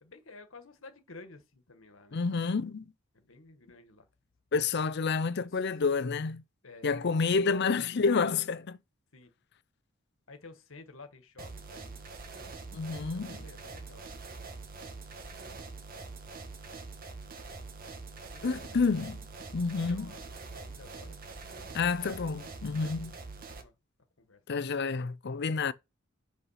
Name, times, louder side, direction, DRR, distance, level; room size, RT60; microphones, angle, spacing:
voice 1, 0.0-2.2 3.1-4.1 5.4-5.6 6.6-6.9 7.4-8.0 9.1-9.3 10.3-12.0 13.1-14.0 18.2-18.9 19.8-21.2 22.7-23.2 23.5-23.7 24.2-24.4, left 3 dB, 90° left, 1.5 m, -52 dB
voice 2, 2.1-2.8 4.5-6.4 6.8-8.8 12.7-13.4 18.4-19.2 19.5-20.1 21.7-23.2 24.5-25.7, left 4 dB, 55° left, 0.5 m, -29 dB
sound 1, 11.4-23.6, right 3 dB, 45° right, 1.2 m, -44 dB
5.6 x 5.6 x 5.7 m
head